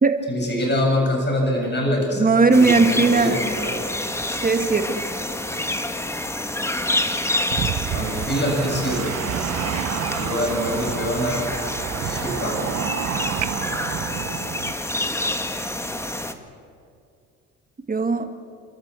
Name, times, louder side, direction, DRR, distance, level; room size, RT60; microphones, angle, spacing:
voice 1, 0.3-2.3 2.6-3.9 7.9-9.2 10.1-11.5 12.0-12.7, equal, 35° left, 1 dB, 7.5 m, -24 dB
voice 2, 2.2-3.4 4.2-5.0 17.9-18.3, right 4 dB, 30° right, 7 dB, 2.2 m, -18 dB
sound 1, 2.5-16.3, left 1 dB, 10° left, 1.7 m, -28 dB
sound 2, 7.5-14.7, right 10 dB, 65° right, 1.0 m, -29 dB
29.5 x 13.5 x 8.4 m, 2.4 s
cardioid pair, 90°, 30 cm